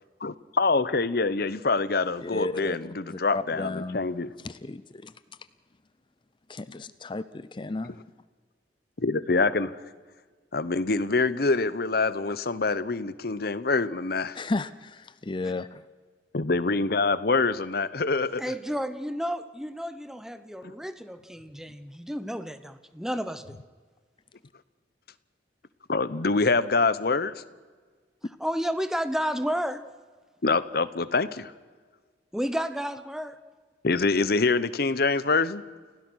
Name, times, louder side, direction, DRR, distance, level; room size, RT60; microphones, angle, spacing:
voice 1, 0.2-4.3 9.0-9.8 10.5-14.4 16.3-18.4 20.6-20.7 25.9-27.4 30.4-31.5 33.8-35.6, left 3 dB, 55° left, 15 dB, 0.9 m, -25 dB
voice 2, 2.2-2.8 3.1-4.0 4.4-5.1 6.5-8.0 14.3-15.8, left 3 dB, 25° left, 15 dB, 0.5 m, -33 dB
voice 3, 18.4-23.4 28.4-29.9 32.3-33.4, equal, 5° right, 11 dB, 1.0 m, -31 dB
29.5 x 16.5 x 6.3 m, 1.5 s
head